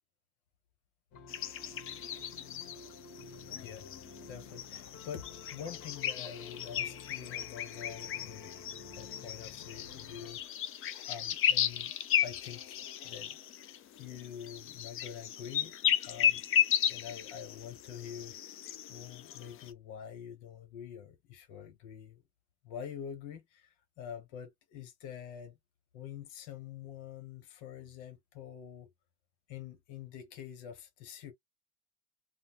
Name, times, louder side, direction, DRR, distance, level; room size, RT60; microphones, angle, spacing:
sound 1, 1.1-10.3, left 4 dB, 70° left, 1.7 m, -51 dB
sound 2, 1.3-19.7, left 9 dB, 40° left, 0.6 m, -35 dB
voice 1, 3.5-3.9 4.2-8.6 8.9-10.4 11.1-13.4 13.9-16.4 16.9-22.2 22.6-25.6 25.9-28.9 29.5-31.3, left 8 dB, 90° left, 1.3 m, -46 dB
3.9 x 2.1 x 2.4 m
cardioid pair, 140°, 33 cm